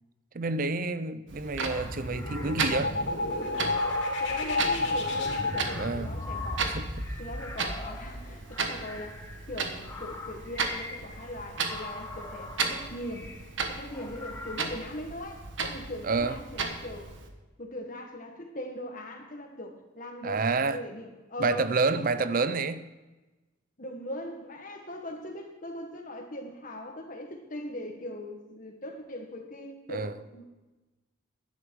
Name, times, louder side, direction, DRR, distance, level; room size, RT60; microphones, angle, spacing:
voice 1, 0.3-3.0 3.6-3.8 5.7-6.1 6.7-6.9 16.0-16.4 20.2-20.8 21.4-22.8 29.9-30.1, right 3 dB, 45° right, 0.5 m, -29 dB
Clock, 1.3-17.3, right 4 dB, 65° right, 1.3 m, -36 dB
sound 1, 1.4-9.0, left 2 dB, 60° left, 3.1 m, -32 dB
sound 2, 1.7-2.9 3.6-4.6 5.3-14.7, left 3 dB, 15° left, 1.0 m, -44 dB
voice 2, 4.2-6.7 7.2-13.3 13.7-17.1 17.6-21.7 22.0-22.2 23.8-30.4, left 1 dB, 40° left, 1.7 m, -40 dB
12.0 x 10.0 x 4.8 m
head